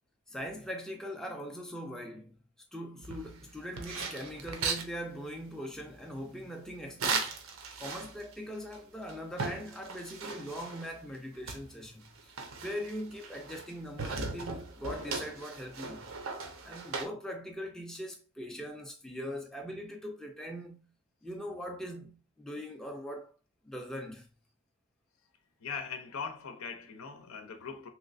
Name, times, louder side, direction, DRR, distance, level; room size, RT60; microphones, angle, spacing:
voice 1, 0.3-2.3 2.7-7.3 7.8-12.3 12.6-16.1 16.6-20.9 21.2-23.3 23.6-24.3, equal, 5° left, 0.4 m, -41 dB
sound 1, 3.0-4.9 7.0-8.3 8.7-8.8 9.1-11.0 11.5-13.7 14.0-17.1, right 4 dB, 75° right, 0.7 m, -37 dB
voice 2, 25.6-27.9, left 5 dB, 85° left, 0.7 m, -40 dB
3.1 x 3.1 x 2.5 m
head